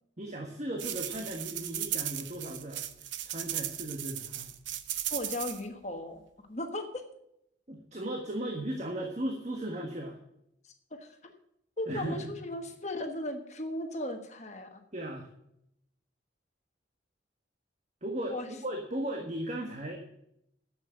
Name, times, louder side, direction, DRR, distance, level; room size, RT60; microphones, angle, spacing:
voice 1, 0.2-4.5 7.7-10.2 11.9-12.3 14.9-15.3 18.0-20.0, right 1 dB, 35° right, 2 dB, 1.5 m, -36 dB
sound 1, 0.8-5.6, right 12 dB, 80° right, 0.8 m, -36 dB
voice 2, 5.1-6.2 6.5-7.0 11.0-11.3 11.8-14.8 18.3-18.5, left 1 dB, 35° left, 5 dB, 1.3 m, -36 dB
11.0 x 7.7 x 7.6 m, 0.78 s
head